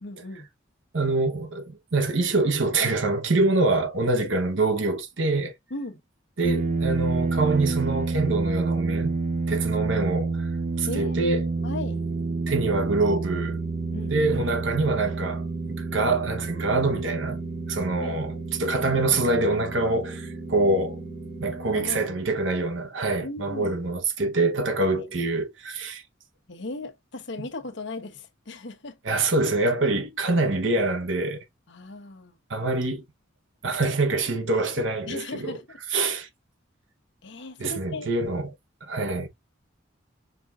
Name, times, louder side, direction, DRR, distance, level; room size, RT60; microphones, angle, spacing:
voice 1, 0.0-0.5 5.7-6.0 10.9-11.2 11.6-12.0 13.9-14.2 18.0-18.2 21.7-22.2 23.2-23.8 25.0-25.1 26.5-29.0 31.7-32.4 35.1-35.8 37.2-38.1, left 2 dB, 65° left, 1.0 m, -37 dB
voice 2, 0.9-5.5 6.4-9.2 9.5-10.5 10.8-11.4 12.5-13.6 14.1-17.4 17.7-21.0 21.4-26.0 29.0-31.4 32.5-33.0 33.6-35.6 35.9-36.3 37.6-38.5 38.9-39.3, right 2 dB, 75° right, 1.1 m, -25 dB
sound 1, 6.4-22.0, right 3 dB, 40° right, 0.5 m, -29 dB
sound 2, 11.6-21.6, right 1 dB, 15° left, 1.6 m, -43 dB
5.2 x 3.7 x 2.4 m
head